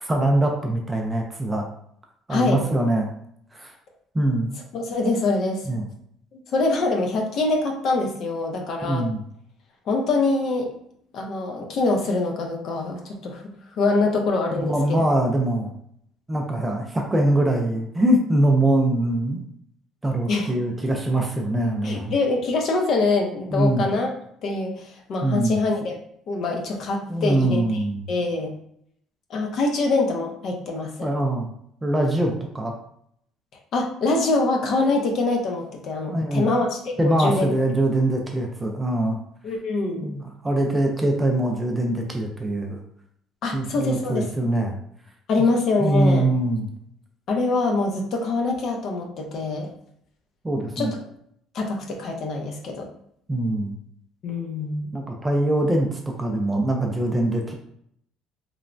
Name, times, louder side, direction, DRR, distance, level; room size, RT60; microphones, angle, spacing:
voice 1, 0.0-1.6 2.3-3.1 3.5-3.7 4.1-4.5 5.7-5.8 8.8-9.2 14.5-15.7 16.3-19.4 20.0-22.1 23.5-23.9 25.2-25.6 27.1-28.0 31.0-31.5 31.8-32.7 36.1-36.5 37.0-39.2 40.0-42.8 43.5-44.8 45.8-46.7 50.4-50.9 53.3-53.8 54.9-57.5, right 1 dB, 10° right, 1 dB, 0.3 m, -23 dB
voice 2, 4.7-5.6 6.3-9.0 9.9-10.7 11.1-13.4 13.8-15.0 20.3-20.5 21.8-24.1 24.4-26.0 26.3-27.6 28.1-28.5 29.3-31.1 33.7-37.5 39.4-40.1 43.4-44.3 45.3-46.2 47.3-49.7 50.8-51.0 51.5-52.9 54.2-54.9, left 3 dB, 45° left, 2 dB, 0.5 m, -24 dB
3.1 x 2.0 x 2.4 m, 0.70 s
cardioid pair, 155°, 0 cm